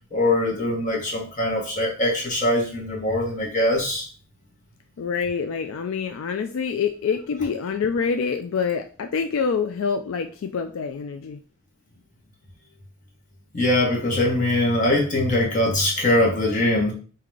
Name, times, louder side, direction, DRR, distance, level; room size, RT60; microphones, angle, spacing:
voice 1, 0.1-4.1 13.5-16.9, left 1 dB, 35° left, -1 dB, 1.4 m, -22 dB
voice 2, 5.0-11.4, left 6 dB, 75° left, 7 dB, 0.4 m, -26 dB
3.8 x 2.8 x 4.7 m, 0.38 s
head